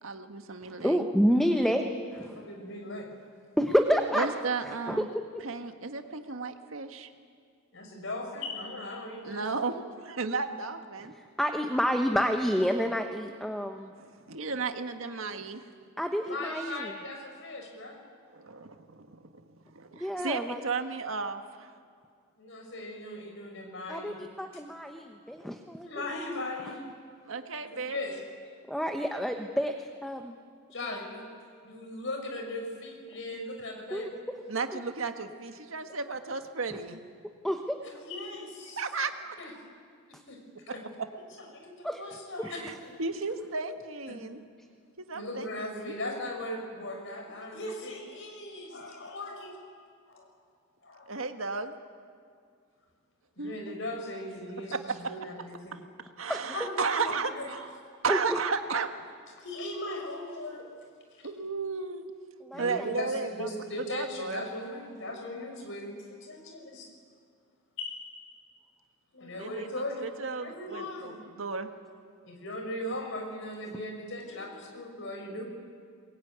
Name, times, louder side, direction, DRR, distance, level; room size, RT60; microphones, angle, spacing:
voice 1, 0.0-1.1 4.1-5.1 5.4-7.1 9.2-11.1 14.0-15.6 16.5-16.7 18.3-19.4 19.7-21.7 27.3-28.0 34.5-37.0 38.8-39.3 42.4-44.4 45.1-45.9 51.1-51.7 53.4-53.8 54.7-54.8 56.2-57.7 58.0-58.9 61.2-62.1 62.6-63.5 63.9-64.4 69.3-69.7 70.0-71.7, right 4 dB, 85° right, 6 dB, 1.6 m, -34 dB
voice 2, 0.7-1.8 2.2-2.4 3.6-4.3 4.6-5.0 11.4-13.9 16.0-16.9 19.9-20.6 23.9-25.9 28.7-30.3 33.9-34.1 37.4-37.8 41.8-42.0 42.4-42.5 56.3-56.5 58.1-58.2 62.4-62.9, equal, ahead, 4 dB, 1.0 m, -28 dB
voice 3, 2.1-3.1 7.7-9.5 16.3-18.0 22.4-24.2 25.8-26.8 27.5-28.2 30.7-31.3 31.6-34.1 37.8-38.8 39.4-39.5 40.1-40.8 41.2-43.0 44.1-44.2 45.1-49.5 50.1-50.3 50.8-51.2 53.4-55.8 56.5-57.9 59.4-60.7 61.1-61.3 62.5-66.9 67.8-68.2 69.1-71.2 72.2-75.4, left 1 dB, 70° left, 3 dB, 5.1 m, -39 dB
23.0 x 20.5 x 9.6 m, 2.1 s
head